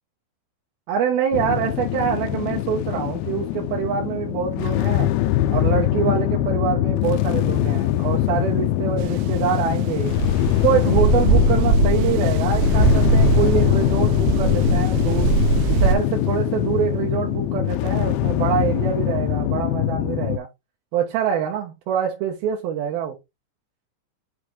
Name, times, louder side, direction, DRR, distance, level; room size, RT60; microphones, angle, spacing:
voice 1, 0.9-5.1 5.5-10.1 10.6-15.4 15.8-20.5 20.9-23.1, right 9 dB, 70° right, 2.6 m, -25 dB
sound 1, 1.3-20.4, left 14 dB, 90° left, 3.0 m, -22 dB
sound 2, 9.0-15.9, right 5 dB, 85° right, 2.3 m, -21 dB
7.9 x 3.4 x 3.6 m
omnidirectional pair, 5.3 m